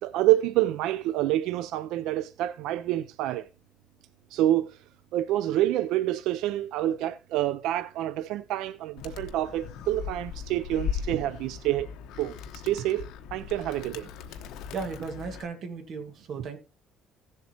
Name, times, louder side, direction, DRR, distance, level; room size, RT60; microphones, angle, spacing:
voice 1, 0.0-3.5 4.3-4.8 5.1-11.9 12.2-14.1, right 14 dB, 80° right, 0.4 m, -27 dB
Animal, 9.0-15.4, left 8 dB, 80° left, 1.0 m, -38 dB
voice 2, 14.7-16.6, right 4 dB, 45° right, 1.7 m, -36 dB
16.5 x 7.3 x 2.9 m
cardioid pair, 170°, 0 cm